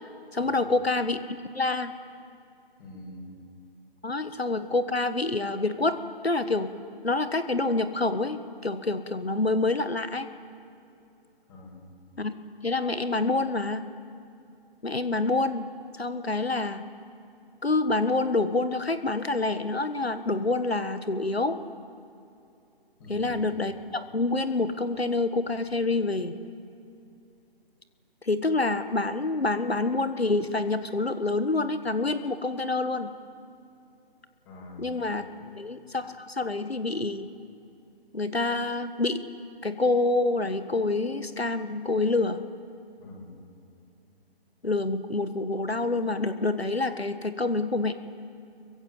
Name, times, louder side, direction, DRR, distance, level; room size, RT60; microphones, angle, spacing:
voice 1, 0.3-1.2 1.5-1.9 4.0-6.0 6.2-6.7 7.0-10.3 12.2-12.3 12.6-13.8 14.8-15.7 15.9-16.8 17.6-21.6 23.1-26.3 28.2-33.1 34.8-35.2 35.6-37.3 38.1-39.2 39.6-42.4 44.6-47.9, left 2 dB, 90° left, 11 dB, 1.5 m, -27 dB
voice 2, 2.8-3.3 11.5-11.8 23.0-23.4 34.4-34.9 35.2-35.5 43.0-43.3, left 2 dB, 25° left, -5 dB, 7.2 m, -44 dB
25.0 x 23.5 x 8.0 m, 2.7 s
figure-of-eight pair, 145°, 30 cm